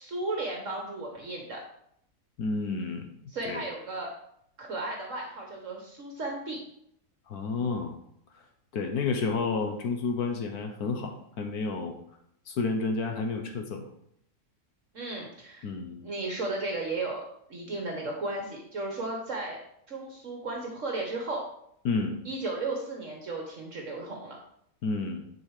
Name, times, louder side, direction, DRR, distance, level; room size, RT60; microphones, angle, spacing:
voice 1, 0.0-1.6 3.3-4.1 4.6-6.6 14.9-15.7 16.0-17.2 17.5-19.6 19.9-21.4 22.2-24.4, right 2 dB, 55° right, 0 dB, 1.6 m, -34 dB
voice 2, 2.4-3.1 3.4-3.6 7.3-7.9 8.3-8.4 8.7-11.9 12.5-13.9 15.6-16.0 21.8-22.2 24.8-25.2, left 4 dB, 75° left, 5 dB, 1.5 m, -30 dB
10.5 x 4.7 x 4.9 m, 0.71 s
omnidirectional pair, 1.6 m